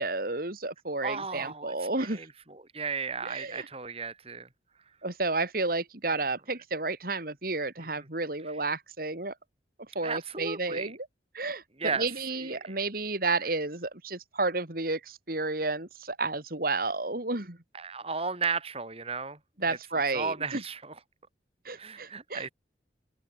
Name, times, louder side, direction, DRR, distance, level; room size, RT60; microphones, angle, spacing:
voice 1, 0.0-2.2 3.2-3.7 5.0-9.3 10.0-11.0 11.3-11.6 11.9-17.6 19.6-20.6 21.7-22.5, right 3 dB, 55° right, 3.6 m, -31 dB
voice 2, 1.0-4.5 6.1-6.2 8.0-8.1 10.0-10.9 11.8-12.1 12.4-12.8 13.4-13.5 17.7-19.4 19.7-19.8 20.1-20.9 21.8-22.5, right 5 dB, 35° right, 4.6 m, -35 dB
open air
head